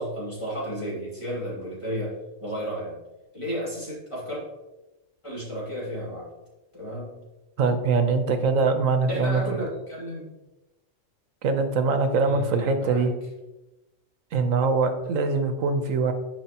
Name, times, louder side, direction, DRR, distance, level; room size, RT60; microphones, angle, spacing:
voice 1, 0.0-2.1 2.4-3.0 3.3-4.4 5.2-6.3 6.7-7.2 9.1-10.3 12.2-13.0, equal, 20° left, -7 dB, 2.8 m, -32 dB
voice 2, 7.6-9.6 11.4-13.1 14.3-16.1, right 4 dB, 75° right, 8 dB, 1.2 m, -23 dB
10.5 x 4.9 x 2.9 m, 1.0 s
omnidirectional pair, 1.4 m